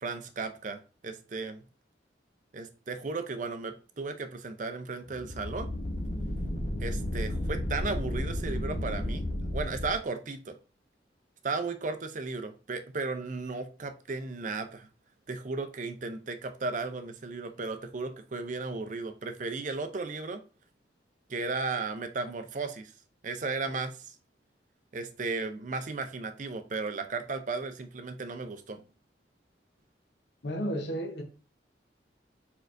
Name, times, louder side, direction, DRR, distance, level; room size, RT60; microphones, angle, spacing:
voice 1, 0.0-1.6 2.5-5.7 6.8-9.2 9.5-10.6 11.4-14.9 15.3-20.4 21.3-22.9 23.2-24.2 24.9-28.8, right 3 dB, 45° right, 0.5 m, -35 dB
sound 1, 5.1-9.9, left 1 dB, 40° left, 1.1 m, -33 dB
voice 2, 30.4-31.2, equal, 70° left, 0.8 m, -33 dB
4.5 x 4.5 x 2.5 m
head